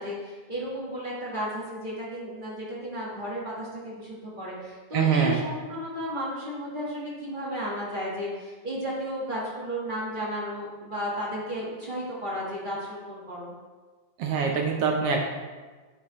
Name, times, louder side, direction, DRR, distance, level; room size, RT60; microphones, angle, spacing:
voice 1, 0.0-13.5, equal, 40° right, -6 dB, 0.6 m, -33 dB
voice 2, 4.9-5.4 14.2-15.2, right 6 dB, 75° right, 2 dB, 1.4 m, -24 dB
11.0 x 5.3 x 3.0 m, 1.4 s
omnidirectional pair, 3.3 m